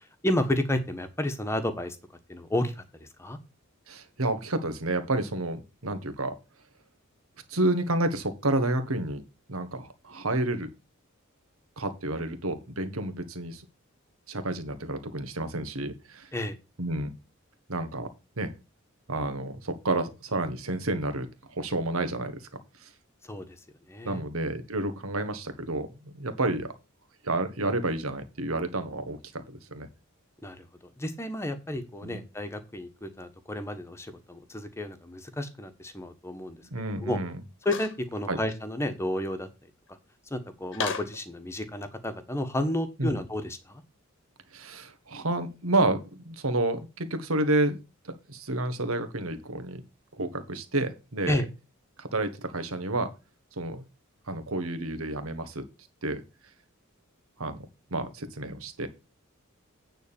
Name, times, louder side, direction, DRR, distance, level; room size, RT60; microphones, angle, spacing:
voice 1, 0.2-2.0 2.3-3.4 16.3-16.6 23.2-23.6 23.9-24.2 30.4-30.6 31.0-36.6 37.0-37.2 37.6-39.5 40.3-43.8 51.3-51.4, left 1 dB, 15° left, 8 dB, 1.2 m, -31 dB
voice 2, 3.9-6.3 7.5-9.2 9.5-10.7 11.8-13.6 14.3-16.3 16.8-17.1 17.7-18.1 18.4-18.5 19.1-21.3 21.5-22.5 22.8-22.9 24.0-26.7 27.2-29.2 29.5-29.9 32.0-32.2 36.7-37.4 38.3-38.4 43.0-43.2 44.5-47.8 48.0-49.8 50.2-51.4 52.0-53.1 53.6-53.8 54.3-55.6 56.0-56.2 57.4-57.6 57.9-58.9, right 2 dB, 80° right, 10 dB, 1.5 m, -30 dB
sound 1, 37.6-38.0 38.5-38.6 40.7-41.2, left 5 dB, 60° left, 1.1 m, -33 dB
9.3 x 3.9 x 7.0 m, 0.28 s
head